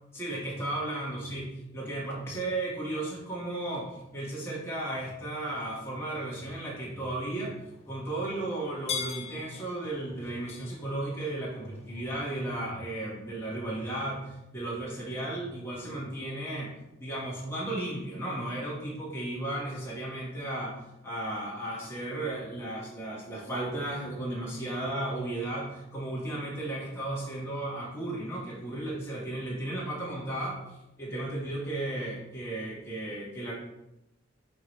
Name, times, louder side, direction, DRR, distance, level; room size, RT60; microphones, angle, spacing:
voice 1, 0.1-7.6 7.9-16.7 17.0-20.8 21.0-33.5, right 1 dB, 15° left, -6 dB, 1.6 m, -34 dB
sound 1, 2.8-12.5, left 6 dB, 35° left, 0.5 m, -45 dB
9.5 x 3.2 x 3.2 m, 0.88 s
head